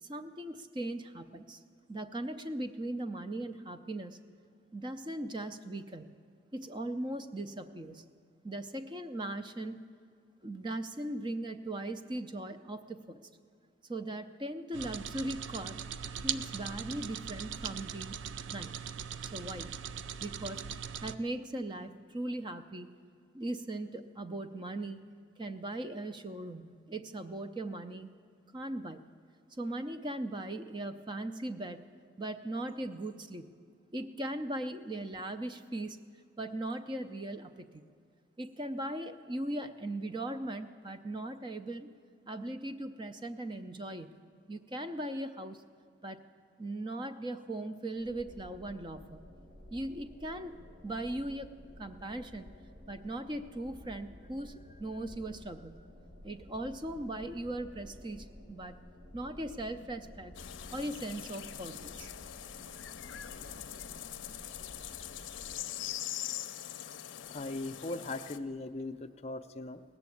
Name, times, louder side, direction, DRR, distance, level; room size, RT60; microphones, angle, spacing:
voice 1, 0.0-1.6 1.9-4.2 4.7-6.1 6.5-8.0 8.4-9.8 10.4-13.3 13.9-15.8 16.2-18.2 18.5-18.8 19.2-19.8 20.2-20.6 21.0-22.9 23.3-25.0 25.4-28.1 28.5-29.0 29.6-31.8 32.2-33.5 33.9-36.0 36.4-37.8 38.4-41.9 42.3-44.2 44.5-45.6 46.0-46.2 46.6-49.2 49.7-52.5 52.9-55.9 56.2-58.8 59.1-60.3 60.7-62.1, right 1 dB, 25° right, 10 dB, 0.5 m, -39 dB
sound 1, 14.7-21.2, right 8 dB, 80° right, 0.4 m, -40 dB
sound 2, 48.0-65.6, left 1 dB, 65° right, 3.9 m, -53 dB
sound 3, 60.3-68.4, left 11 dB, 85° left, 0.5 m, -43 dB
voice 2, 67.3-69.8, left 2 dB, 35° left, 8 dB, 0.4 m, -39 dB
18.0 x 7.0 x 8.4 m, 2.2 s
head